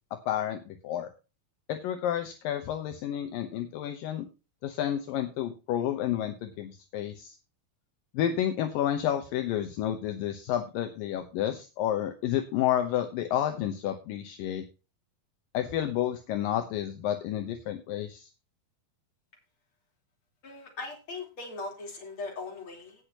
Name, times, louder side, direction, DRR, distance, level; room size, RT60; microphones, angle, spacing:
voice 1, 0.3-1.1 1.7-4.3 4.6-7.4 8.1-14.6 15.5-18.3, left 11 dB, 75° left, 6 dB, 2.6 m, -30 dB
voice 2, 20.4-23.0, left 3 dB, 35° left, 1 dB, 4.3 m, -39 dB
18.0 x 6.3 x 2.9 m, 0.31 s
omnidirectional pair, 4.2 m